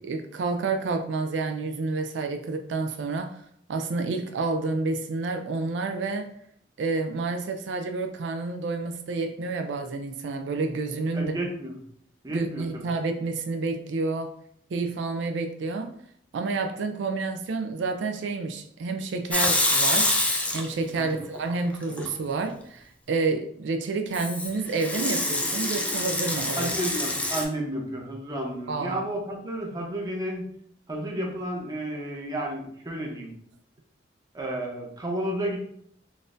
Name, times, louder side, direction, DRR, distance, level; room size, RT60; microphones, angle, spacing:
voice 1, 0.0-3.4 3.7-6.3 6.8-11.3 12.3-14.3 14.7-15.9 16.3-20.2 20.5-26.7 28.7-29.0, right 3 dB, 85° right, 6 dB, 0.4 m, -29 dB
voice 2, 11.1-11.8 12.2-12.9 21.0-21.2 26.6-30.5 30.9-33.3 34.3-35.6, right 1 dB, 20° right, 0 dB, 0.7 m, -32 dB
Water tap faucet / Sink (filling or washing) / Liquid, 19.3-21.0 21.4-22.1 24.1-27.4, left 1 dB, 10° left, 0.4 m, -26 dB
3.9 x 2.5 x 2.5 m, 0.66 s
head